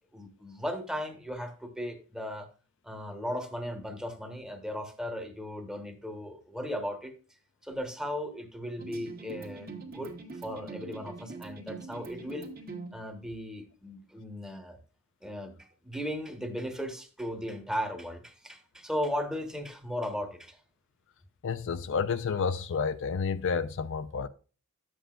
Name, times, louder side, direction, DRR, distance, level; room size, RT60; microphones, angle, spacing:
voice 1, 0.1-2.5 2.8-7.1 7.6-12.5 12.9-14.8 15.2-20.6, equal, 5° right, 1.2 m, -36 dB
sound 1, 8.8-12.9, right 3 dB, 45° right, 1.5 m, -43 dB
voice 2, 21.4-24.3, left 5 dB, 60° left, 0.4 m, -30 dB
11.5 x 7.8 x 2.4 m
head